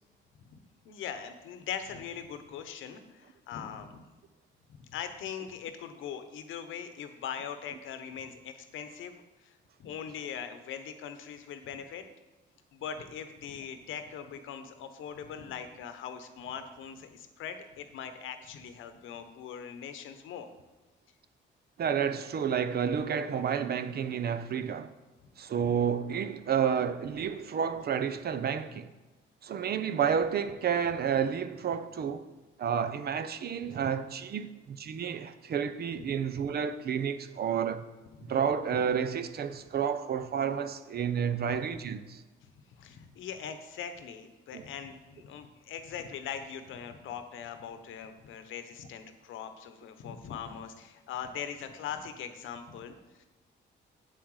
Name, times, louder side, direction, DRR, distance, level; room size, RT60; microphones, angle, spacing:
voice 1, 0.8-4.0 4.8-12.0 12.7-20.5 36.0-36.1 38.2-38.3 42.4-53.3, left 8 dB, 80° left, 0.9 m, -41 dB
voice 2, 21.8-24.9 25.4-28.9 29.4-32.3 32.6-37.8 38.2-42.2 44.5-44.6, right 7 dB, 55° right, 0.6 m, -30 dB
8.2 x 7.7 x 4.8 m
cardioid pair, 90°, 20 cm